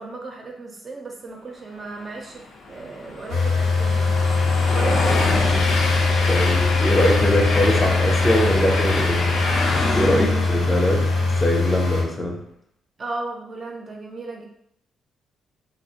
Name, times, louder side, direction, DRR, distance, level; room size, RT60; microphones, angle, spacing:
voice 1, 0.0-2.4 2.7-4.1 4.7-5.8 10.2-10.7 13.0-14.5, right 3 dB, 40° right, 0 dB, 0.5 m, -35 dB
Train, 2.4-11.8, left 3 dB, 65° left, 0.4 m, -26 dB
sound 1, 3.3-12.0, left 3 dB, 85° left, 0.9 m, -21 dB
voice 2, 6.3-9.3 9.9-12.4, left 1 dB, 15° left, -1 dB, 0.6 m, -22 dB
2.4 x 2.0 x 2.8 m, 0.69 s
cardioid pair, 90°, 0 cm